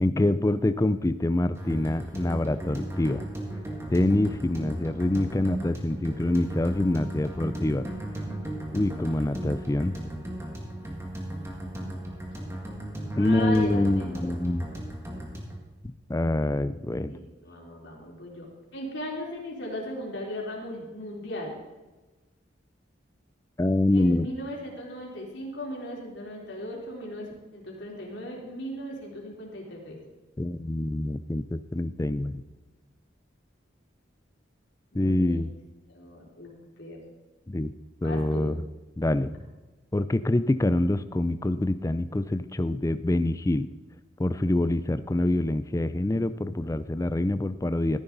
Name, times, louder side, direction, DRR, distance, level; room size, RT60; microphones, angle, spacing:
voice 1, 0.0-3.3 3.9-7.9 8.7-10.0 13.2-14.7 16.1-17.1 23.6-24.3 30.4-32.4 34.9-35.5 37.5-37.7 38.0-38.6 39.0-39.3 39.9-43.7 44.2-48.0, left 1 dB, 15° left, 13 dB, 0.4 m, -25 dB
sound 1, 1.6-15.6, right 1 dB, 15° right, 2.0 m, -36 dB
voice 2, 11.3-12.5 13.2-14.1 17.1-21.6 23.9-30.0 34.9-35.5 35.9-36.5 36.8-37.0 38.0-38.5, left 1 dB, 65° left, -2 dB, 3.6 m, -38 dB
14.0 x 11.0 x 4.0 m, 1.2 s
head